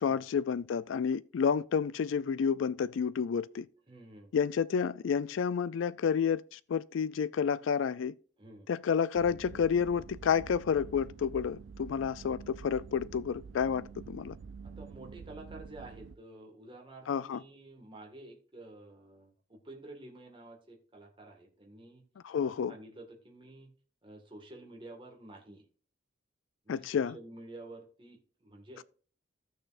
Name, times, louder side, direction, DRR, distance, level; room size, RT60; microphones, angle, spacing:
voice 1, 0.0-3.7 4.3-8.1 8.7-14.4 17.1-17.4 22.2-22.7 26.7-27.2 28.8-28.9, left 7 dB, 85° left, 0.4 m, -30 dB
voice 2, 3.9-4.3 8.4-8.7 14.6-22.0 22.4-23.7 24.0-25.6 26.7-28.8, right 2 dB, 25° right, 1.8 m, -50 dB
sound 1, 9.1-16.2, right 5 dB, 90° right, 0.4 m, -48 dB
15.0 x 6.6 x 2.5 m
head